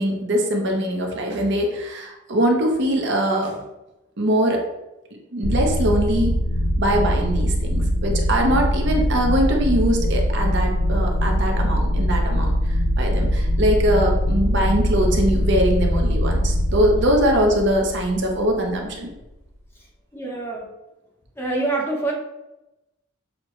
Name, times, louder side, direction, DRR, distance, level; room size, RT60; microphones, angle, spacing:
voice 1, 0.0-3.5 4.2-4.6 5.3-6.4 6.8-19.1, equal, 55° right, 1 dB, 0.7 m, -22 dB
sound 1, 5.4-18.7, equal, 75° left, 0.8 m, -22 dB
voice 2, 20.1-20.7 21.4-22.1, right 2 dB, 10° left, -2 dB, 0.7 m, -25 dB
6.3 x 2.1 x 3.0 m, 0.96 s
head